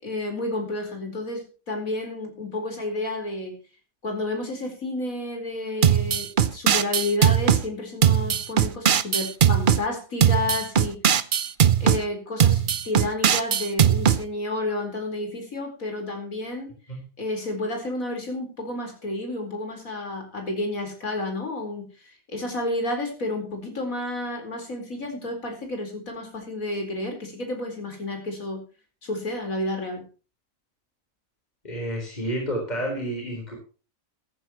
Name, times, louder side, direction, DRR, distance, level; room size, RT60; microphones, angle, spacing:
voice 1, 0.0-3.5 4.0-11.0 11.8-16.7 17.2-21.9 22.3-28.6 29.0-30.0, left 2 dB, 85° left, 4 dB, 4.8 m, -31 dB
sound 1, 5.8-7.6 8.0-9.8 10.2-12.0 12.4-14.2, right 8 dB, 45° right, 0.8 m, -19 dB
voice 2, 31.6-33.6, right 1 dB, 30° left, 0 dB, 4.3 m, -30 dB
16.0 x 13.5 x 3.0 m, 0.35 s
omnidirectional pair, 1.4 m